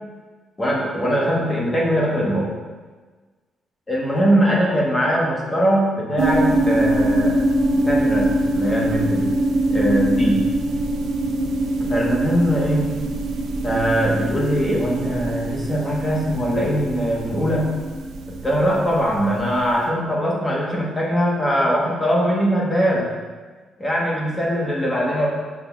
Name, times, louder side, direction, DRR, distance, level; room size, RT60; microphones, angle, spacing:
voice 1, 0.6-2.5 3.9-7.4 7.7-8.3 8.5-9.3 9.7-10.4 11.8-12.9 13.6-17.7 18.3-23.1 23.8-25.3, equal, 15° left, -4 dB, 1.3 m, -21 dB
sound 1, 6.2-19.6, right 1 dB, 80° right, 0.7 m, -23 dB
6.0 x 3.8 x 5.8 m, 1.4 s
cardioid pair, 170°, 0 cm